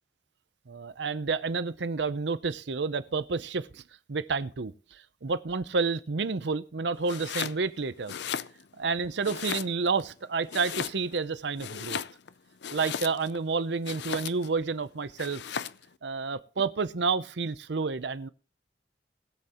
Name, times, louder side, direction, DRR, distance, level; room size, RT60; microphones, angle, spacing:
voice 1, 0.7-3.8 4.1-8.2 8.8-12.0 12.7-15.4 16.0-18.3, right 4 dB, 75° right, 0.7 m, -30 dB
Domestic sounds home sounds, 7.0-7.6 8.0-8.9 9.2-10.0 10.5-11.3 11.6-13.4 13.8-14.6 15.2-15.9, left 8 dB, 70° left, 0.5 m, -36 dB
21.0 x 7.8 x 3.0 m
head